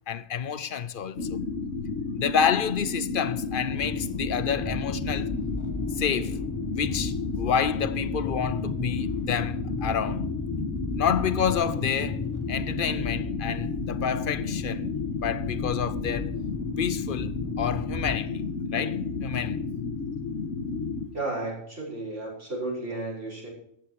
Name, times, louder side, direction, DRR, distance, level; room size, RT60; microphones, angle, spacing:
voice 1, 0.1-1.5 2.2-5.3 6.0-6.4 6.7-10.3 11.0-12.2 12.5-14.8 15.2-16.3 16.8-18.5 18.7-19.6, left 7 dB, 50° left, 0.8 m, -29 dB
sound 1, 1.2-21.1, left 4 dB, 65° left, 1.8 m, -32 dB
sound 2, 3.7-18.2, left 2 dB, 15° left, 0.8 m, -37 dB
voice 2, 21.1-23.5, right 2 dB, 60° right, 6.2 m, -33 dB
14.0 x 10.5 x 4.7 m
omnidirectional pair, 1.4 m